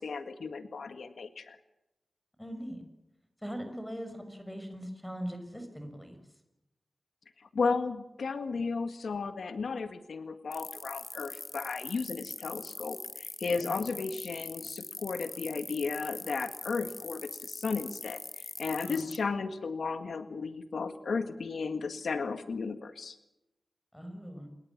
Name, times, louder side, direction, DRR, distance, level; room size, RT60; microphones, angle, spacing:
voice 1, 0.0-1.6 7.4-23.2, left 4 dB, 85° left, 9 dB, 1.8 m, -34 dB
voice 2, 2.4-2.8 3.4-6.2 13.6-13.7 18.8-19.0 23.9-24.5, equal, 5° left, 6 dB, 6.6 m, -40 dB
sound 1, 10.5-19.2, left 3 dB, 35° left, 2.4 m, -42 dB
28.5 x 21.0 x 7.4 m, 0.90 s
wide cardioid pair, 125°, 0 cm